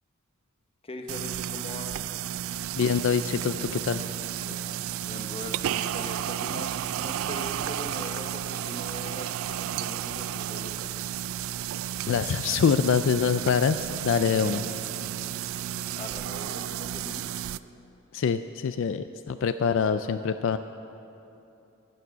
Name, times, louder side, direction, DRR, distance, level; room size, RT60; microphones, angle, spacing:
voice 1, 0.8-2.0 4.4-11.0 14.4-15.1 16.0-17.6, left 1 dB, 25° left, 4 dB, 1.0 m, -41 dB
sound 1, 1.1-17.6, right 11 dB, 70° right, 0.3 m, -32 dB
voice 2, 2.8-4.1 12.1-14.6 18.1-20.6, left 6 dB, 65° left, 11 dB, 0.3 m, -25 dB
15.5 x 8.6 x 6.6 m, 2.9 s
head